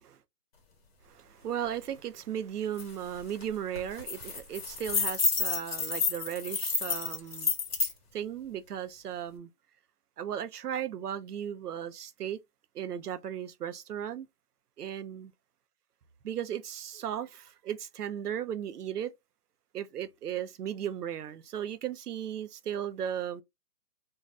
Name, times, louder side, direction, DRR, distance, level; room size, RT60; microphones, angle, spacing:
voice 1, 1.0-7.5 8.1-9.5 10.2-12.4 12.7-14.3 14.8-15.3 16.2-19.1 19.7-23.4, right 9 dB, 80° right, 0.6 m, -36 dB
sound 1, 2.8-2.9 3.2-3.4 3.8-7.9, left 4 dB, 40° left, 0.9 m, -30 dB
2.6 x 2.3 x 3.2 m
hypercardioid pair, 160°, 46 cm